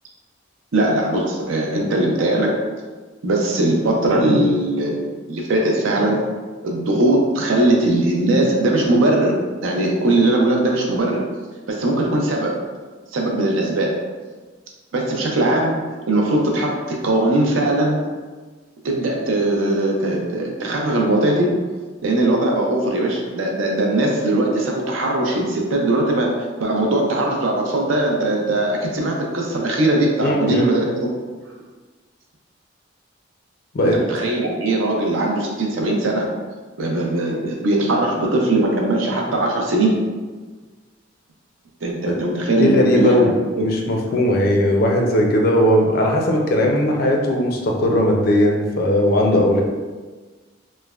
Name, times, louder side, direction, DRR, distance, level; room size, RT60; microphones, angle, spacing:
voice 1, 0.7-2.6 3.2-6.2 6.6-11.3 11.7-12.6 13.1-14.0 14.9-18.0 18.8-21.6 22.0-31.1 33.8-36.3 36.8-40.0 41.8-43.3 43.6-43.7, right 1 dB, 80° right, 0 dB, 0.5 m, -20 dB
voice 2, 30.2-30.7 33.7-34.0 42.1-42.2 42.6-49.6, left 1 dB, 50° left, 0 dB, 0.4 m, -18 dB
3.1 x 2.1 x 2.3 m, 1.4 s
head